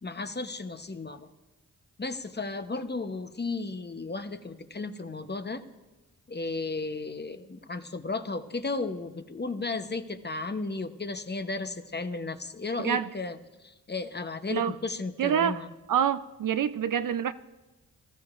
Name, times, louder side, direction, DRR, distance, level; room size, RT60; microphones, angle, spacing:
voice 1, 0.0-1.3 2.0-5.6 6.3-15.7, left 3 dB, 25° left, 0.9 m, -34 dB
voice 2, 12.8-13.1 14.5-14.8 15.2-15.6 15.9-17.3, right 9 dB, 55° right, 0.5 m, -26 dB
20.0 x 13.0 x 2.5 m
cardioid pair, 45°, 38 cm